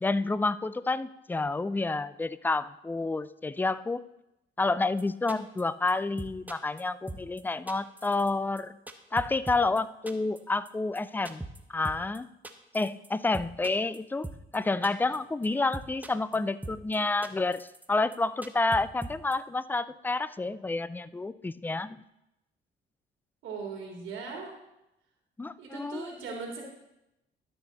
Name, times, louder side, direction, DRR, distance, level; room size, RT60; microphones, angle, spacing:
voice 1, 0.0-4.0 4.6-8.8 9.1-12.3 12.7-22.0 25.4-26.1, left 3 dB, 10° left, 16 dB, 0.3 m, -29 dB
sound 1, 5.0-5.1 5.3-5.6 5.9-6.0 6.2-6.8 7.1-7.4 7.7-8.3 8.6-9.8 10.1-10.4 10.6-10.7 10.9-11.0 11.2-11.6 11.8-12.2 12.4-13.1 13.3-14.0 14.2-14.6 14.8-15.2 15.4-15.5 15.7-16.4 16.6-17.0 17.2-17.9 18.1-18.2 18.4-19.3, right 2 dB, 10° right, 0.8 m, -40 dB
voice 2, 23.4-24.5 25.6-26.7, right 4 dB, 80° right, -1 dB, 2.5 m, -39 dB
11.5 x 6.5 x 4.1 m, 0.89 s
cardioid pair, 90°, 20 cm